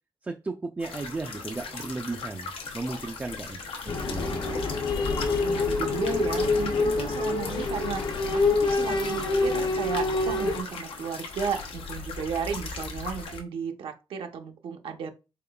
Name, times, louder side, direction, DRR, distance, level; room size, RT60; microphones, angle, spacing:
voice 1, 0.2-3.6 3.9-4.6, right 3 dB, 15° right, 4 dB, 0.3 m, -35 dB
sound 1, 0.8-13.4, left 4 dB, 90° left, 0.8 m, -38 dB
sound 2, 3.9-10.6, left 3 dB, 50° left, 0.6 m, -26 dB
voice 2, 5.4-15.1, right 6 dB, 70° right, 5 dB, 0.6 m, -34 dB
3.8 x 3.6 x 2.2 m, 0.28 s
wide cardioid pair, 140°, 9 cm